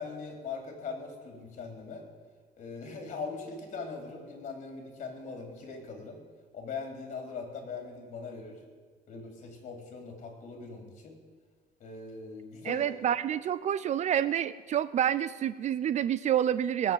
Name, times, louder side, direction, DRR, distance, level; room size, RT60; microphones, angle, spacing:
voice 1, 0.0-2.0 2.6-6.2 6.5-8.6 9.1-11.2 11.8-12.9, left 4 dB, 45° left, 3 dB, 3.9 m, -41 dB
voice 2, 12.6-16.9, right 10 dB, 45° right, 16 dB, 0.5 m, -28 dB
21.0 x 7.2 x 9.1 m, 1.5 s
cardioid pair, 130°, 17 cm